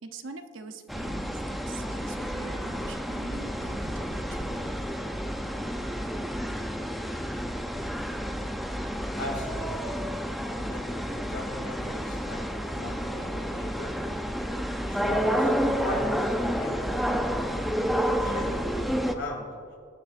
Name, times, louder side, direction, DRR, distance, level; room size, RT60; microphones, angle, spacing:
voice 1, 0.0-4.7, right 3 dB, 80° right, 6 dB, 0.8 m, -44 dB
sound 1, 0.9-19.1, equal, ahead, 0.5 m, -30 dB
voice 2, 9.2-10.0 10.5-12.5 12.7-13.9 14.8-17.1 18.2-19.5, left 1 dB, 85° left, -1 dB, 2.6 m, -39 dB
20.5 x 9.6 x 2.6 m, 2.3 s
head